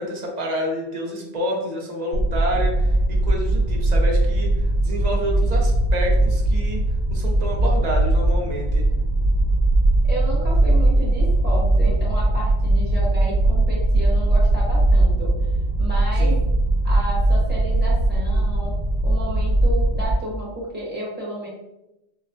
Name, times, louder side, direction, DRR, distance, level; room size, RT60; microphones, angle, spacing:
voice 1, 0.0-4.5 4.8-6.8 7.1-8.9 16.2-16.4, equal, 45° right, 0 dB, 0.6 m, -28 dB
sound 1, 2.1-20.1, right 1 dB, 70° right, 0.9 m, -19 dB
voice 2, 10.0-15.3 15.8-16.3 16.8-18.7 19.0-21.5, right 1 dB, 10° right, -6 dB, 0.9 m, -32 dB
4.8 x 2.1 x 2.5 m, 0.93 s
omnidirectional pair, 1.3 m